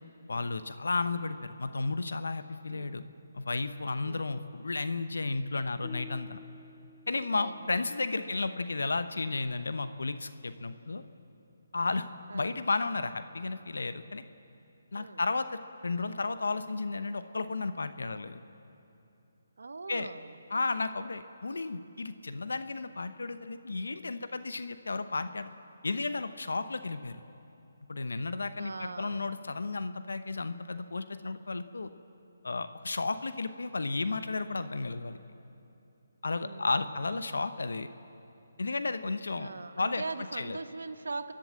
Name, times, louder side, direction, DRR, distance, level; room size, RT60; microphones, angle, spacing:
voice 1, 0.3-3.0 3.3-6.4 7.1-11.0 11.7-12.1 12.3-14.2 14.9-18.4 19.9-20.1 20.5-25.5 25.8-27.2 27.9-31.9 32.4-35.2 36.2-37.9 38.6-39.5 39.8-40.0 40.3-40.6, left 3 dB, 85° left, 11 dB, 0.8 m, -33 dB
sound 1, 5.8-9.0, left 6 dB, 15° left, 1.4 m, -52 dB
voice 2, 7.3-7.7 8.1-8.4 12.3-12.5 14.9-15.2 19.6-20.4 28.6-29.3 36.4-36.8 39.4-41.3, right 3 dB, 80° right, 11 dB, 1.0 m, -41 dB
30.0 x 11.5 x 7.5 m, 2.9 s
hypercardioid pair, 160°, 0 cm